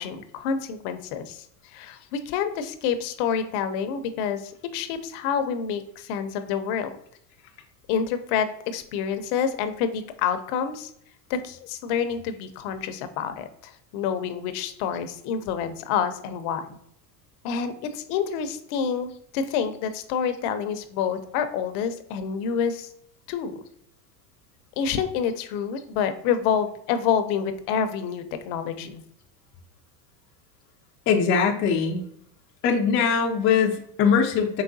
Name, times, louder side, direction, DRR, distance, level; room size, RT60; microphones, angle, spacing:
voice 1, 0.0-6.9 7.9-10.9 11.3-16.8 17.4-22.9 23.3-23.6 24.8-29.0, left 7 dB, 60° left, 10 dB, 0.7 m, -28 dB
voice 2, 31.1-32.0 32.6-34.6, left 6 dB, 25° left, 2 dB, 0.4 m, -21 dB
4.8 x 3.2 x 2.6 m, 0.72 s
supercardioid pair, 120°, 49 cm